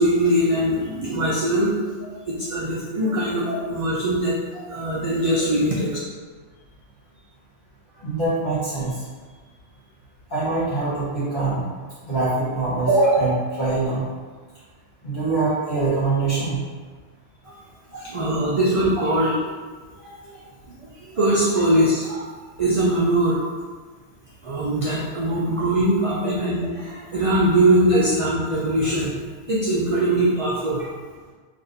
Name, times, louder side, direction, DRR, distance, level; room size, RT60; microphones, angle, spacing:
voice 1, 0.0-1.7 2.3-4.4 4.7-5.9 17.4-17.5 18.0-19.4 20.0-20.4 20.7-20.8 21.0-22.3 22.6-23.4 24.4-29.1 29.5-30.8, right 1 dB, 55° right, -6 dB, 0.3 m, -21 dB
voice 2, 7.9-9.0 10.3-11.6 12.0-14.0 15.0-16.6 17.9-18.0 18.4-18.5 26.2-26.3, right 3 dB, 45° left, -11 dB, 1.3 m, -23 dB
2.6 x 2.5 x 4.0 m, 1.4 s
omnidirectional pair, 1.2 m